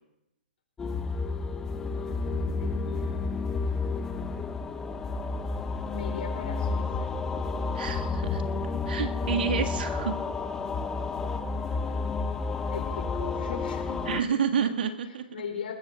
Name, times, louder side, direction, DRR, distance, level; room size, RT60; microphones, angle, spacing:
sound 1, 0.8-14.2, left 4 dB, 10° left, 0.5 m, -31 dB
voice 1, 2.0-3.2 5.9-7.1 8.5-8.8 10.4-10.7 11.0-11.1 11.8-12.0 12.7-14.4 15.3-15.7, left 6 dB, 70° left, 3 dB, 4.4 m, -40 dB
voice 2, 7.7-8.4 8.9-10.2 14.1-15.3, right 7 dB, 65° right, 7 dB, 1.8 m, -29 dB
20.0 x 14.5 x 3.6 m, 0.90 s
hypercardioid pair, 160°, 6 cm